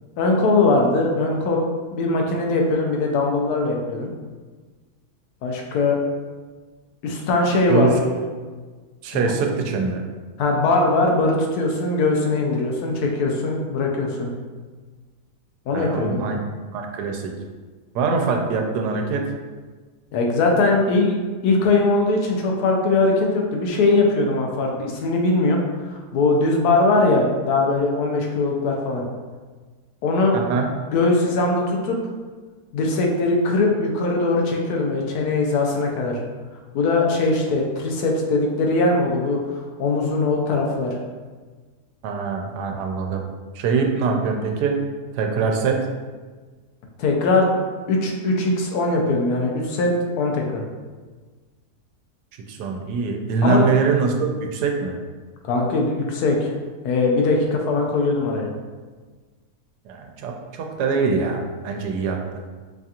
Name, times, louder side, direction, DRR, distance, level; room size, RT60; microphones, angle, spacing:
voice 1, 0.2-1.6 1.9-4.1 5.4-6.0 7.0-8.2 9.1-9.3 10.4-14.3 15.7-16.2 20.1-21.2 21.4-25.6 25.9-29.0 30.0-30.6 30.9-32.0 32.7-36.2 36.7-41.0 47.0-47.5 47.9-49.9 50.2-50.6 53.4-53.6 55.4-56.5 56.8-58.5, left 3 dB, 75° left, 0 dB, 1.2 m, -21 dB
voice 2, 7.7-8.0 9.0-10.0 15.7-16.4 16.7-17.3 17.9-19.3 30.3-30.7 42.0-43.2 43.5-44.8 45.1-45.9 52.5-55.0 59.8-62.4, right 4 dB, 85° right, 2 dB, 1.1 m, -23 dB
4.8 x 2.4 x 2.8 m, 1.4 s
omnidirectional pair, 1.7 m